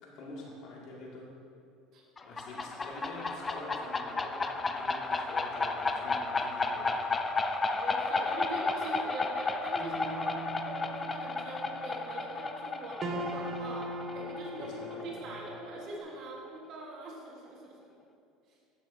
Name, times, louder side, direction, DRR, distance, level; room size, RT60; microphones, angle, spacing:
voice 1, 0.0-1.3 2.2-7.0 14.6-15.3, left 2 dB, 60° left, -3 dB, 2.2 m, -46 dB
sound 1, 2.2-15.6, left 3 dB, 20° left, 0.5 m, -33 dB
voice 2, 7.7-17.9, right 2 dB, 55° right, -2 dB, 1.4 m, -43 dB
sound 2, 9.8-16.0, right 1 dB, 35° right, 1.1 m, -41 dB
11.5 x 7.8 x 2.7 m, 2.5 s
supercardioid pair, 110°, 0 cm